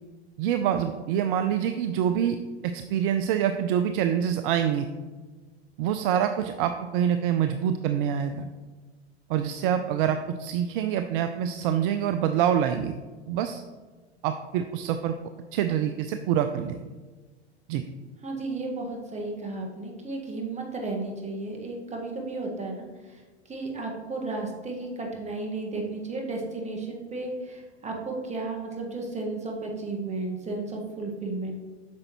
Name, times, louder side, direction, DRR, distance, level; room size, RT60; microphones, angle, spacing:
voice 1, 0.4-2.4 2.6-4.9 5.8-8.5 9.3-12.9 13.3-13.6 14.2-15.2 15.5-16.9 17.7-17.8, right 9 dB, 50° right, 8 dB, 0.5 m, -26 dB
voice 2, 18.2-31.5, right 3 dB, 20° right, 0 dB, 1.6 m, -33 dB
8.5 x 6.4 x 3.0 m, 1.3 s
hypercardioid pair, 95°, 33 cm